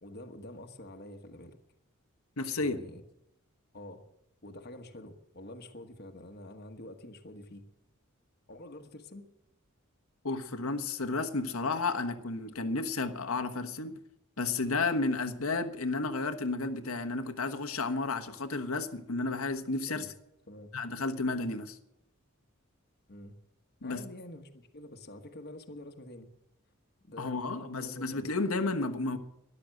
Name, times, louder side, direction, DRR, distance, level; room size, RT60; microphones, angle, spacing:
voice 1, 0.0-1.6 2.6-3.0 3.7-4.0 4.4-7.6 8.5-9.3 19.9-20.1 20.5-20.7 23.1-23.4 23.8-26.3 27.0-28.3, left 1 dB, 50° left, 1.3 m, -47 dB
voice 2, 2.4-2.8 10.2-14.0 14.4-20.1 20.7-21.8 23.8-24.0 27.2-29.2, left 3 dB, 85° left, 1.2 m, -32 dB
13.0 x 11.5 x 7.7 m
head